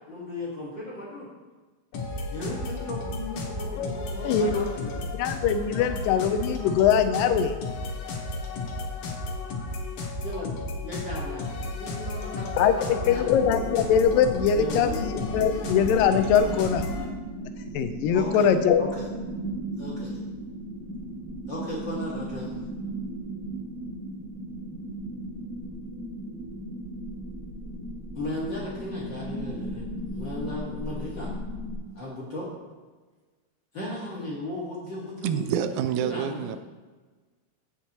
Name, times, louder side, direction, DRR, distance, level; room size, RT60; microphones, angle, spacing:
voice 1, 0.1-1.3 2.3-5.0 10.2-13.3 14.6-15.0 15.5-15.6 18.1-18.5 18.8-19.1 19.8-20.2 21.5-22.6 28.1-29.8 30.1-31.3 31.9-32.5 33.7-36.5, left 1 dB, 45° left, -6 dB, 1.8 m, -36 dB
sound 1, 1.9-17.1, left 2 dB, 60° left, 1.9 m, -33 dB
voice 2, 4.2-4.7 5.2-7.6 12.6-12.7 13.1-16.8 17.7-18.9, left 8 dB, 85° left, 9 dB, 2.3 m, -22 dB
sound 2, 13.2-31.8, right 1 dB, 40° right, 2.5 m, -36 dB
voice 3, 35.2-36.6, right 9 dB, 80° right, 10 dB, 1.8 m, -27 dB
16.0 x 6.2 x 2.9 m, 1.3 s
omnidirectional pair, 3.9 m